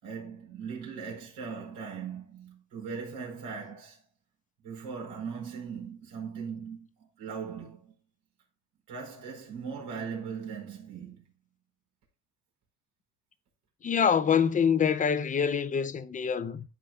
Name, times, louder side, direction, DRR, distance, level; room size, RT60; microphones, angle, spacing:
voice 1, 0.0-4.0 4.6-7.9 8.9-11.2, right 6 dB, 75° right, 4.8 m, -39 dB
voice 2, 13.8-16.6, left 7 dB, 20° left, 0.4 m, -25 dB
14.0 x 5.0 x 2.3 m
cardioid pair, 140°, 41 cm